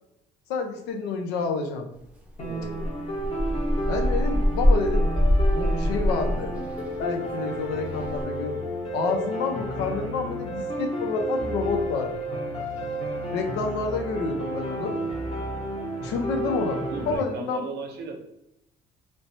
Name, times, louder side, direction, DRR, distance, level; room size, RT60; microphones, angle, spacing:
voice 1, 0.5-1.9 3.9-5.1 5.5-6.5 7.0-8.6 8.9-12.7 13.3-15.0 16.0-17.7, left 4 dB, 90° left, 4 dB, 0.6 m, -29 dB
sound 1, 2.4-17.2, right 1 dB, 35° left, 0.9 m, -31 dB
sound 2, 2.4-7.0 7.3-7.4 7.8-8.2, left 1 dB, 10° right, 0.6 m, -23 dB
voice 2, 2.4-2.9 16.9-18.2, right 4 dB, 80° right, 3 dB, 0.7 m, -36 dB
3.3 x 2.0 x 2.6 m, 0.84 s
cardioid pair, 110°, 17 cm